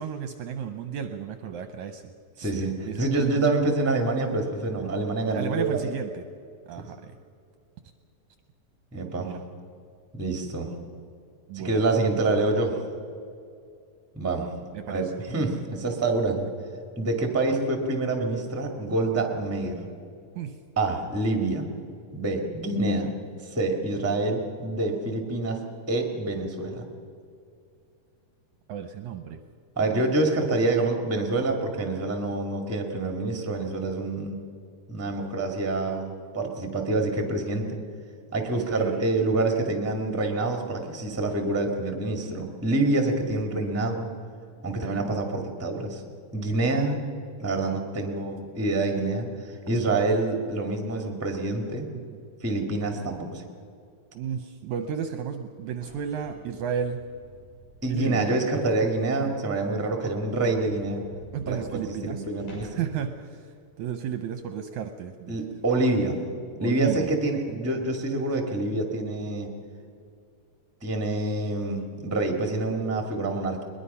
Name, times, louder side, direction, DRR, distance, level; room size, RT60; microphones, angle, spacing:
voice 1, 0.0-2.0 2.4-3.5 5.3-6.2 6.7-7.1 9.2-9.4 11.5-11.8 14.7-15.1 20.4-20.6 28.7-29.4 38.8-39.1 44.8-45.1 51.9-52.2 54.1-57.0 57.9-58.3 59.2-59.3 61.3-62.2 62.6-63.5 63.8-65.4 66.6-67.1, right 8 dB, 70° right, 8 dB, 1.9 m, -33 dB
voice 2, 2.4-5.8 6.8-6.9 8.9-9.3 10.1-10.7 11.5-12.8 14.1-14.5 14.9-16.5 17.0-19.9 20.7-21.7 22.1-23.1 23.4-26.8 29.7-34.4 34.9-37.8 38.3-44.1 44.6-46.0 46.3-47.0 47.4-51.9 52.4-53.4 57.8-61.0 61.5-62.8 65.3-66.2 66.6-69.5 70.8-73.6, right 2 dB, 5° right, 3 dB, 1.5 m, -27 dB
sound 1, 55.7-58.2 58.6-58.7 59.2-59.3 59.5-59.6 59.9-60.0 60.3-62.9, equal, 85° left, 8.1 m, -49 dB
21.5 x 21.5 x 5.6 m, 2.4 s
omnidirectional pair, 3.9 m